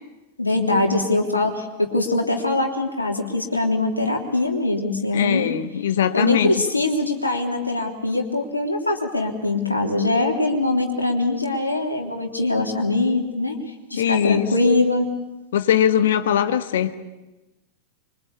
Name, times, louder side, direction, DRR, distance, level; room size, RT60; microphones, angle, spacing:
voice 1, 0.4-5.6 6.1-13.6 13.9-15.1, left 2 dB, 85° left, 2 dB, 3.5 m, -22 dB
voice 2, 5.1-6.6 14.0-14.5 15.5-16.9, left 10 dB, 60° left, 11 dB, 1.5 m, -20 dB
26.5 x 23.5 x 8.6 m, 1.1 s
figure-of-eight pair, 90°, 0 cm